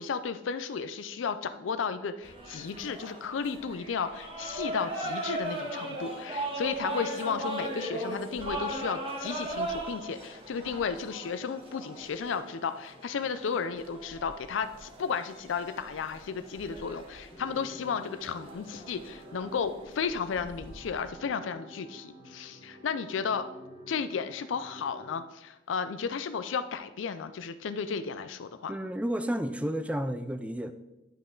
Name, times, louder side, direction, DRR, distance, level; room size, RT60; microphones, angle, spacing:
voice 1, 0.0-23.5 23.9-28.7, left 6 dB, 85° left, 11 dB, 0.4 m, -34 dB
sound 1, 2.2-21.1, right 1 dB, 30° right, 1.4 m, -39 dB
sound 2, 17.3-25.2, equal, 30° left, 1.3 m, -50 dB
voice 2, 28.7-30.7, right 1 dB, 5° right, 10 dB, 0.4 m, -31 dB
9.7 x 5.4 x 3.8 m, 0.98 s
head